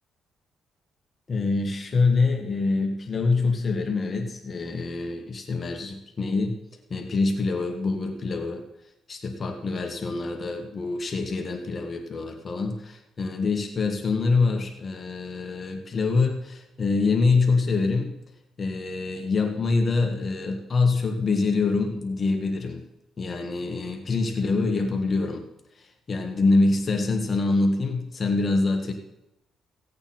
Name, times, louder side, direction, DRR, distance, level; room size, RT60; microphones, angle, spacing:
voice 1, 1.3-6.6 6.9-8.6 9.1-18.1 18.6-22.8 23.2-25.4 25.8-28.9, left 3 dB, 40° left, 3 dB, 2.0 m, -25 dB
16.5 x 8.8 x 4.4 m, 0.89 s
cardioid pair, 90°, 0 cm